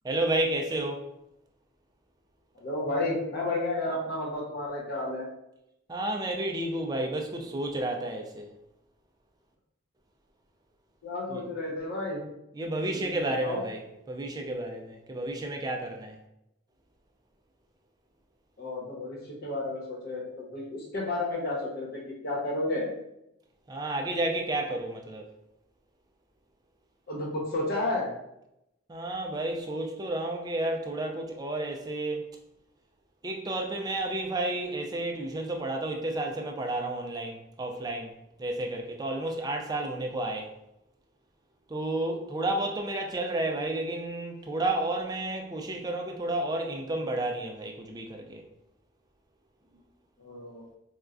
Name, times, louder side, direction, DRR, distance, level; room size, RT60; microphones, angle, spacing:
voice 1, 0.0-1.1 5.9-8.5 11.3-11.4 12.5-13.8 14.1-16.2 23.7-25.3 28.9-32.2 33.2-38.1 38.4-40.5 41.7-48.4, right 2 dB, 20° right, 2 dB, 0.4 m, -31 dB
voice 2, 2.5-5.3 11.0-12.2 12.9-13.6 18.6-22.9 27.1-28.1 50.2-50.6, left 2 dB, 50° left, -4 dB, 1.0 m, -32 dB
4.3 x 2.3 x 2.5 m, 0.85 s
head